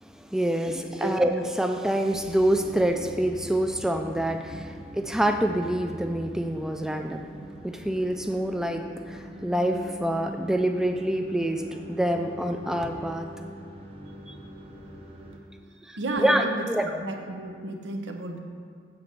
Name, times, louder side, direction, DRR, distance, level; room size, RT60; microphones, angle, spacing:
voice 1, 0.0-7.3 7.6-13.3 14.3-14.4 15.8-17.0, right 1 dB, 5° right, 5 dB, 0.3 m, -26 dB
sound 1, 2.1-15.4, equal, 30° right, 0.8 m, -42 dB
voice 2, 16.0-18.4, right 2 dB, 85° right, 4 dB, 0.8 m, -32 dB
7.9 x 4.2 x 6.8 m, 2.1 s
head